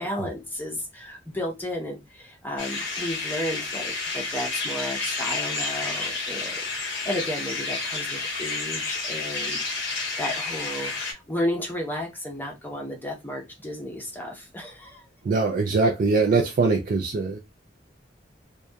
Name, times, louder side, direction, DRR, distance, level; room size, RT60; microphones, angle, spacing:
voice 1, 0.0-9.6 10.2-15.1, left 1 dB, 10° left, 0.6 m, -33 dB
sound 1, 2.6-11.1, left 3 dB, 70° left, 0.8 m, -30 dB
voice 2, 15.2-17.4, right 4 dB, 45° right, 0.3 m, -22 dB
2.7 x 2.2 x 2.2 m
head